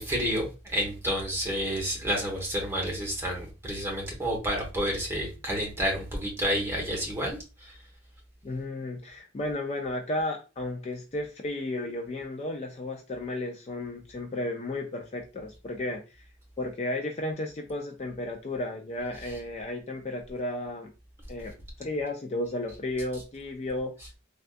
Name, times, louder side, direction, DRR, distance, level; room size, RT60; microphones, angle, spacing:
voice 1, 0.0-7.8, equal, 15° right, -1 dB, 1.0 m, -30 dB
voice 2, 8.4-16.2 16.6-20.9 21.3-21.5 21.8-23.9, left 1 dB, 35° left, 3 dB, 0.3 m, -33 dB
3.4 x 2.3 x 2.5 m, 0.31 s
head